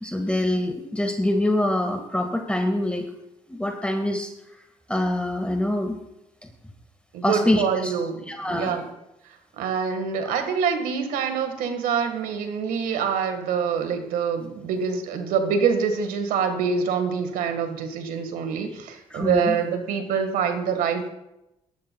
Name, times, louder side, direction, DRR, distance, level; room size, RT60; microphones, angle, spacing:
voice 1, 0.0-3.1 3.5-4.3 4.9-6.0 7.2-7.9 8.3-8.7 10.2-10.3 19.1-19.6, left 1 dB, 10° left, 3 dB, 1.7 m, -25 dB
voice 2, 7.1-8.9 9.6-21.1, right 6 dB, 85° right, 7 dB, 1.6 m, -25 dB
18.5 x 12.0 x 2.3 m, 0.88 s
supercardioid pair, 65°, 14 cm